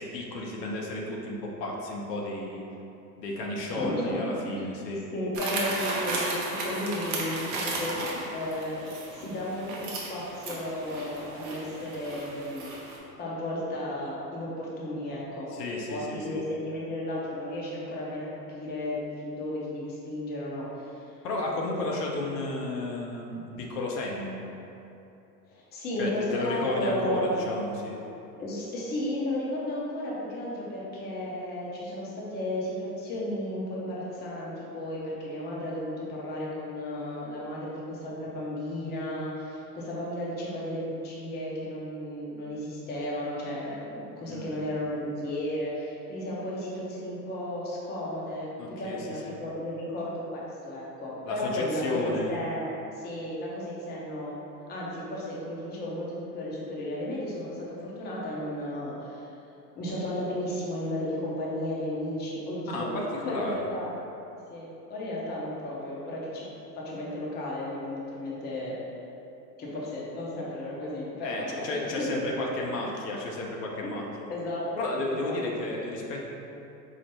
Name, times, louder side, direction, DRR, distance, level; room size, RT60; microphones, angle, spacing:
voice 1, 0.0-2.6 3.2-5.1 15.5-16.5 21.2-24.4 26.0-28.0 44.3-44.6 48.6-49.3 51.2-52.4 62.7-63.7 71.2-74.3 74.8-76.3, left 2 dB, 70° left, -1 dB, 0.8 m, -33 dB
voice 2, 3.7-4.7 5.1-12.7 13.2-15.5 15.9-21.0 25.5-27.4 28.4-52.6 52.9-54.4 54.7-59.2 59.8-63.0 63.2-63.9 64.5-66.5 66.7-68.7 69.6-71.7 72.0-72.2 74.3-74.7 75.1-75.4, left 1 dB, 20° left, -5 dB, 0.6 m, -34 dB
sound 1, 5.3-13.0, right 2 dB, 35° right, 0.7 m, -35 dB
4.7 x 2.1 x 3.0 m, 2.8 s
hypercardioid pair, 95°, 50 cm